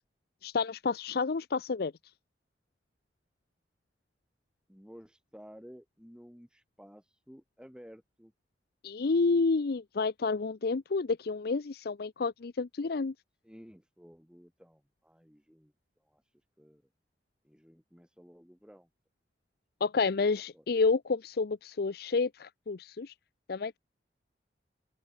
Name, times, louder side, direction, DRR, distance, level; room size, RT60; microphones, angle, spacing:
voice 1, 0.4-1.9 8.8-13.1 19.8-23.1 23.5-23.8, left 4 dB, 60° left, 0.5 m, -29 dB
voice 2, 4.7-8.3 13.4-15.7 16.0-16.2 16.6-16.8 17.4-18.9 20.5-20.6, equal, 5° right, 4.4 m, -54 dB
open air
head